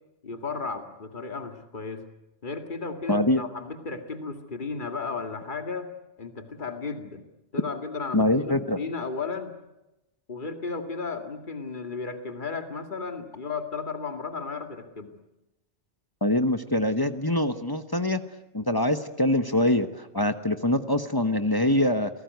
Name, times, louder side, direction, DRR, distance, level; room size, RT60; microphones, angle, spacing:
voice 1, 0.2-2.1 2.4-5.9 6.2-7.2 7.5-9.6 10.3-15.1, left 4 dB, 45° left, 6 dB, 2.3 m, -34 dB
voice 2, 3.1-3.4 8.1-8.8 16.2-18.2 18.5-22.1, left 1 dB, 20° left, 9 dB, 1.1 m, -24 dB
28.5 x 19.5 x 9.4 m, 0.96 s
omnidirectional pair, 1.1 m